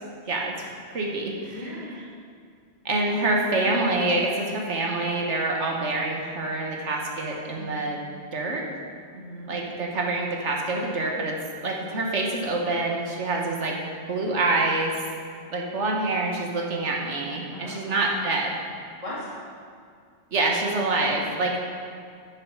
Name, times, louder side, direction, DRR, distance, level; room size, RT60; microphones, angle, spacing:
voice 1, 0.9-1.6 2.8-8.0 8.3-8.6 9.5-11.4 11.6-13.8 14.1-14.9 15.5-18.5 20.3-21.5, right 2 dB, 70° right, -1 dB, 1.4 m, -26 dB
voice 2, 1.5-2.0 7.5-7.8 9.1-9.5 17.5-18.0 19.0-19.3, left 1 dB, 25° left, -8 dB, 2.7 m, -38 dB
8.9 x 7.1 x 5.5 m, 2.2 s
omnidirectional pair, 1.2 m